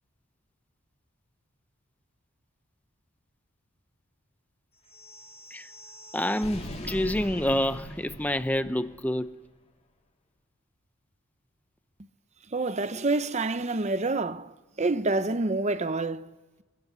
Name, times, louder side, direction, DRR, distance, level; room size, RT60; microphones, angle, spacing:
sound 1, 4.8-9.2, left 1 dB, 30° left, 3.2 m, -41 dB
voice 1, 6.1-9.3, left 1 dB, 5° left, 0.7 m, -28 dB
voice 2, 12.5-14.5 14.8-16.3, right 2 dB, 30° right, 0.7 m, -27 dB
23.0 x 21.5 x 8.2 m
head